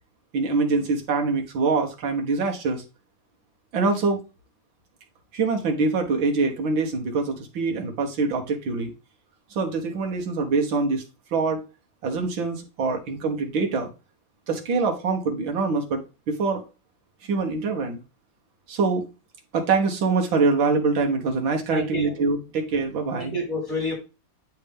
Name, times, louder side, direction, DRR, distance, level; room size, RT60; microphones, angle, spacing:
voice 1, 0.3-2.8 3.7-4.2 5.3-8.9 9.6-11.0 11.3-11.6 12.0-13.9 14.5-16.7 17.2-18.0 18.7-19.1 19.5-23.3, right 4 dB, 90° right, 2.1 m, -24 dB
voice 2, 21.7-22.1 23.1-23.9, left 1 dB, 45° left, 4.5 m, -29 dB
9.8 x 3.5 x 3.5 m
omnidirectional pair, 2.0 m